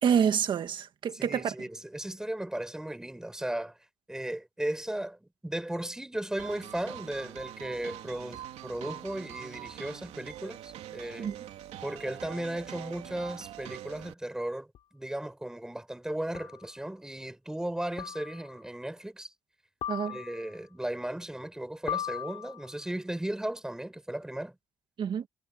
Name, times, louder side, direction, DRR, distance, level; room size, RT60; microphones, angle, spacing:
voice 1, 0.0-1.5 11.2-11.3 19.9-20.2 25.0-25.3, right 8 dB, 50° right, 1.8 m, -27 dB
voice 2, 1.1-3.8 4.1-11.3 11.8-19.3 20.1-24.6, right 1 dB, 5° right, 5.8 m, -36 dB
sound 1, 6.4-14.1, right 12 dB, 90° right, 3.1 m, -44 dB
sound 2, 14.7-14.8 16.3-16.7 18.0-18.5 19.8-20.6 21.9-22.8, left 10 dB, 60° left, 5.2 m, -38 dB
cardioid pair, 150°, 11 cm